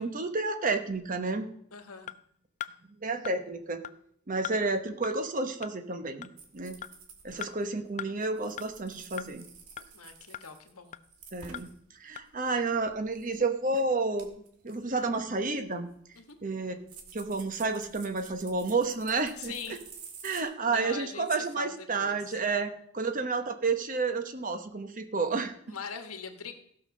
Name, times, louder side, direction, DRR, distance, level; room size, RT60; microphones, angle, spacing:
voice 1, 0.0-1.5 3.0-3.8 4.3-6.3 6.5-6.7 7.2-9.4 11.3-11.7 12.0-14.3 14.6-15.9 16.4-16.7 17.1-19.5 20.2-25.5, right 3 dB, 35° right, 8 dB, 0.9 m, -30 dB
voice 2, 1.7-2.1 9.9-11.0 16.1-16.4 19.4-19.8 20.3-22.2 25.7-26.5, left 6 dB, 75° left, 7 dB, 1.4 m, -42 dB
sound 1, 2.1-2.2 2.6-2.7 3.2-3.3 3.8-3.9 4.4-4.6 5.0-5.1 5.6-5.7 6.2-6.3 6.8-6.9 7.4-7.5 8.0-8.1 8.6-8.7 9.2-9.3 9.8-9.9 10.3-10.4 10.9-11.0 11.5-11.6 12.2-12.3, left 10 dB, 35° left, 0.3 m, -38 dB
sound 2, 6.4-7.9 8.2-11.8 12.1-13.4 13.7-13.8 14.2-20.4, right 6 dB, 90° right, 1.8 m, -51 dB
15.5 x 5.9 x 6.3 m, 0.68 s
head